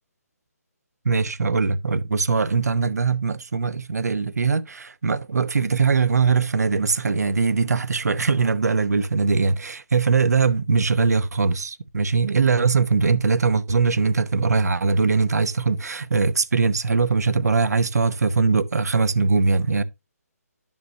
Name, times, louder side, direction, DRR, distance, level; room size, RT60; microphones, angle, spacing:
voice 1, 1.0-19.8, right 4 dB, 75° right, 0.9 m, -21 dB
10.5 x 6.2 x 2.8 m
figure-of-eight pair, 145°, 9 cm